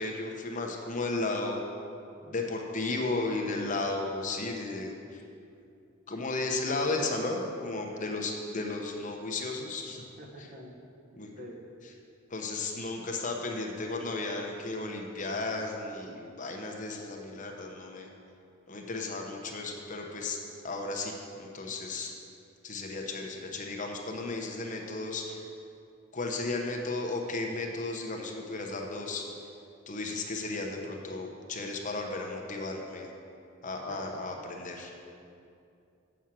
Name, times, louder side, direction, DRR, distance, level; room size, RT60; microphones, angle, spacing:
voice 1, 0.0-1.6 2.2-5.2 6.1-10.0 11.1-11.3 12.3-18.1 18.7-20.4 20.6-22.1 22.6-25.5 26.1-29.3 29.9-33.1 33.6-34.9, left 2 dB, 35° left, 1 dB, 0.9 m, -34 dB
voice 2, 10.2-10.7 11.3-11.6 33.9-34.1, equal, 40° right, 0 dB, 1.0 m, -46 dB
7.1 x 6.2 x 7.4 m, 2.6 s
head